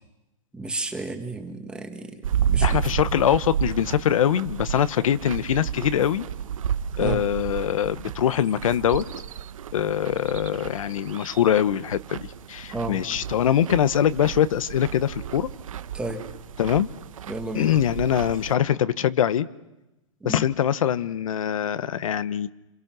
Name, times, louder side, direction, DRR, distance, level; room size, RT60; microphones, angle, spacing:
voice 1, 0.5-2.2 2.4-2.7 7.0-7.2 12.7-13.0 15.9-16.2 17.3-17.7 20.2-20.4, right 2 dB, 5° right, 5 dB, 1.6 m, -32 dB
sound 1, 2.2-18.5, right 9 dB, 80° right, 1.0 m, -32 dB
voice 2, 2.6-6.3 7.0-9.0 9.7-15.5 16.6-16.9 17.5-19.5 20.2-22.5, left 10 dB, 80° left, 13 dB, 1.1 m, -23 dB
29.0 x 27.0 x 6.2 m, 0.98 s
hypercardioid pair, 160°, 17 cm